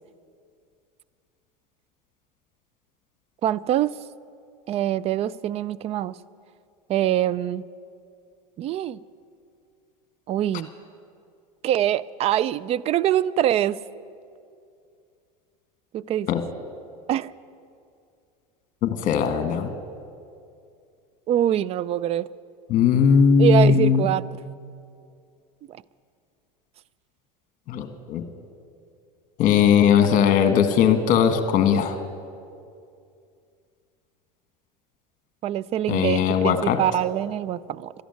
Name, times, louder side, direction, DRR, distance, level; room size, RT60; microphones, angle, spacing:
voice 1, 3.4-4.0 4.7-6.2 6.9-7.7 8.6-9.0 10.3-10.7 11.6-13.8 15.9-16.3 17.1-17.3 21.3-22.3 23.4-24.2 25.7-25.8 35.4-37.9, right 11 dB, 35° right, 20 dB, 0.4 m, -24 dB
voice 2, 18.8-19.7 22.7-24.1 27.7-28.2 29.4-32.0 35.9-36.8, left 7 dB, 45° left, 8 dB, 1.5 m, -19 dB
12.5 x 11.0 x 9.3 m, 2.4 s
supercardioid pair, 110°, 19 cm